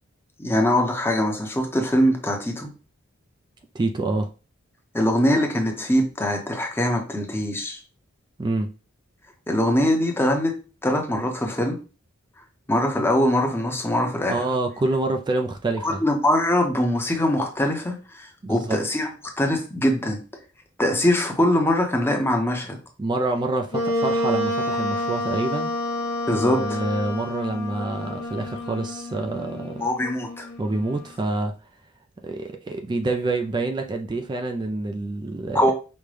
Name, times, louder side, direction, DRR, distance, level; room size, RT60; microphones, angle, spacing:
voice 1, 0.4-2.7 4.9-7.8 9.5-10.6 10.8-11.8 12.7-14.3 15.8-19.1 19.4-20.2 20.8-22.8 26.3-26.8 29.8-30.5 35.5-35.7, left 1 dB, 10° left, 0.7 m, -22 dB
voice 2, 3.7-4.3 8.4-8.7 14.3-16.0 18.4-18.8 23.0-25.7 26.3-29.8 30.6-31.5 32.2-35.6, right 2 dB, 20° right, 0.3 m, -27 dB
Wind instrument woodwind instrument, 23.7-31.1, left 1 dB, 55° left, 0.9 m, -29 dB
5.2 x 2.2 x 3.2 m
head